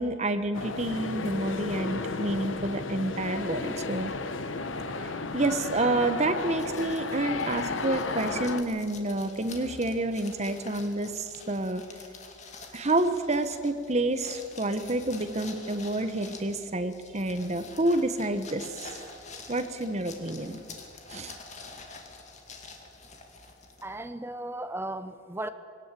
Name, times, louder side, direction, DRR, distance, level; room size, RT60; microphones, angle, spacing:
voice 1, 0.0-4.1 5.0-11.8 12.7-18.9 19.5-20.6 21.1-21.3, right 2 dB, 35° right, 10 dB, 1.1 m, -29 dB
sound 1, 0.5-8.6, left 3 dB, 75° left, 1.0 m, -33 dB
sound 2, 6.6-24.1, left 4 dB, 40° left, 2.2 m, -47 dB
voice 2, 23.8-25.5, right 1 dB, 10° right, 11 dB, 0.8 m, -36 dB
20.5 x 18.0 x 7.6 m, 2.4 s
head